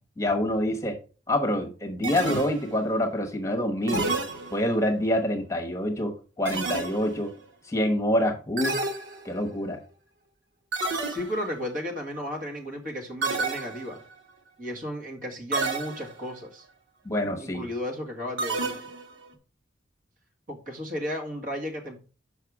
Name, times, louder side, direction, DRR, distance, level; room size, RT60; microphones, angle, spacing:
voice 1, 0.2-1.0 1.3-4.0 4.5-7.3 7.7-8.8 9.2-9.8 17.0-17.6, left 1 dB, 15° left, 3 dB, 1.1 m, -26 dB
sound 1, 2.0-2.9 3.9-4.9 6.5-7.3 8.6-9.6 10.7-11.6 13.2-14.1 15.5-16.3 18.4-19.2, right 3 dB, 90° right, 1.4 m, -30 dB
voice 2, 11.1-14.0 14.6-16.7 17.4-18.7 20.5-22.0, equal, 45° right, 1 dB, 1.8 m, -34 dB
6.6 x 5.6 x 4.8 m, 0.36 s
head